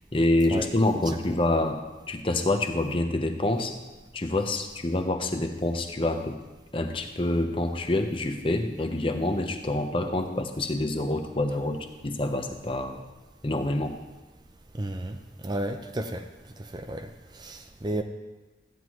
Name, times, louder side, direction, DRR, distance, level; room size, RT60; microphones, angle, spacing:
voice 1, 0.1-1.8 2.1-3.8 4.1-6.4 6.7-13.0 13.4-13.9, left 2 dB, 30° left, 5 dB, 0.8 m, -27 dB
voice 2, 14.7-16.2 16.6-18.0, right 1 dB, 25° right, 6 dB, 0.5 m, -33 dB
14.5 x 9.8 x 3.1 m, 1.1 s
head